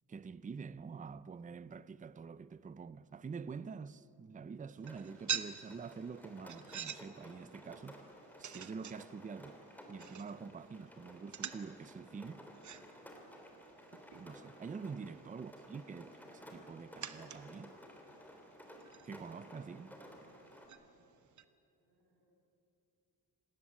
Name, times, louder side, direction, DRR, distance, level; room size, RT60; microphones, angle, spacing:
voice 1, 0.1-8.0 8.4-9.6 9.9-12.5 14.2-17.8 19.1-20.0, right 5 dB, 20° right, 0.5 m, -46 dB
sound 1, 4.7-21.4, right 8 dB, 45° right, 1.0 m, -48 dB
Rain, 4.8-20.7, equal, 5° left, 3.3 m, -55 dB
voice 2, 21.7-22.3, right 1 dB, 85° right, 7.7 m, -79 dB
27.0 x 19.5 x 8.6 m
wide cardioid pair, 150°, 39 cm